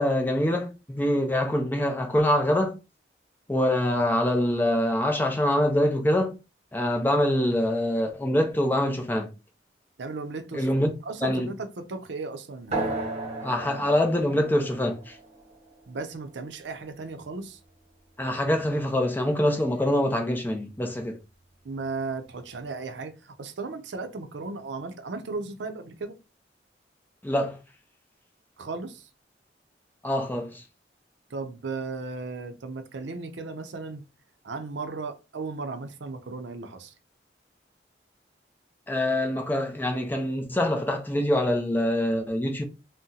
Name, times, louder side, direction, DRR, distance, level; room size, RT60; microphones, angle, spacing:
voice 1, 0.0-2.8 3.5-6.3 6.7-9.3 10.5-10.9 11.2-11.5 13.4-15.2 18.2-21.2 27.2-27.6 30.0-30.6 38.9-42.6, left 1 dB, 10° left, 0.5 m, -25 dB
voice 2, 10.0-10.7 11.0-13.0 13.8-13.9 15.9-17.6 21.6-26.2 28.6-29.1 31.3-34.0 34.4-36.9, right 3 dB, 80° right, 0.5 m, -36 dB
sound 1, 12.7-17.7, right 2 dB, 35° right, 1.0 m, -36 dB
2.7 x 2.1 x 3.7 m
head